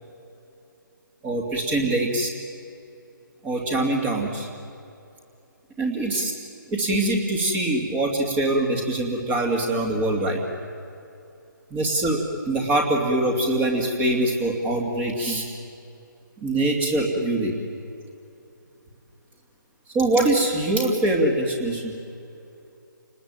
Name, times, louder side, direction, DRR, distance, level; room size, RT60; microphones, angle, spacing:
voice 1, 1.2-2.3 3.4-4.5 5.8-6.3 6.7-10.4 11.7-12.2 12.5-15.4 16.4-17.5 19.9-21.9, right 2 dB, 15° right, 2 dB, 2.6 m, -23 dB
29.5 x 19.5 x 9.0 m, 2.7 s
figure-of-eight pair, 150°, 11 cm